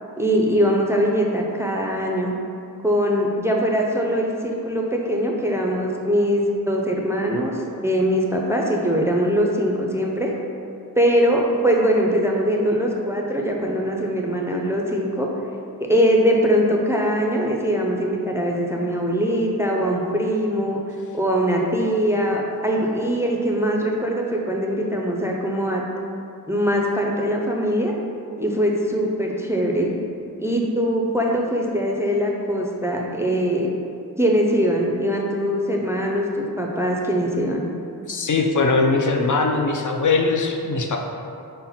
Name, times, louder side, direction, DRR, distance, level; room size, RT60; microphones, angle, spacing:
voice 1, 0.2-2.3 2.8-7.5 7.8-10.3 11.0-15.3 15.8-20.8 21.1-25.8 26.5-27.9 28.4-29.9 30.4-33.7 34.2-37.7, equal, 10° right, -1 dB, 0.4 m, -22 dB
voice 2, 38.1-41.0, left 3 dB, 55° left, 2 dB, 0.4 m, -20 dB
5.5 x 2.1 x 4.1 m, 2.6 s
wide cardioid pair, 75°, 37 cm